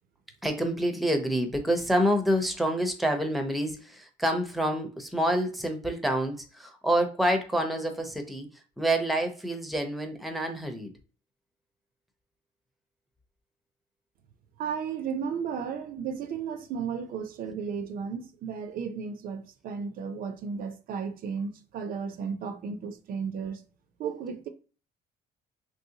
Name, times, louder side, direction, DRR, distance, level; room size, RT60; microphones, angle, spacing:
voice 1, 0.4-8.5 8.8-10.9, right 1 dB, ahead, 0.6 m, -27 dB
voice 2, 14.6-23.6 24.0-24.5, right 6 dB, 60° right, 0.4 m, -34 dB
3.0 x 2.6 x 2.7 m
cardioid pair, 110°, 17 cm